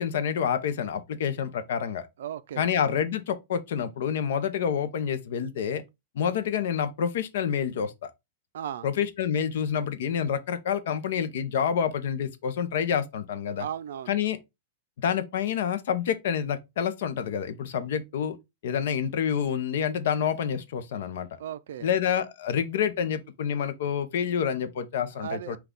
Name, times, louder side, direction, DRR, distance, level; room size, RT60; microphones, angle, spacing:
voice 1, 0.0-2.1 2.6-5.8 6.1-7.9 8.8-13.6 14.1-14.4 15.0-18.4 18.6-21.3 21.8-25.6, left 8 dB, 55° left, 0.7 m, -28 dB
voice 2, 2.2-2.7 8.5-8.9 13.6-14.2 21.4-21.9 25.1-25.6, right 10 dB, 65° right, 0.4 m, -36 dB
5.7 x 2.3 x 3.7 m
supercardioid pair, 180°, 0 cm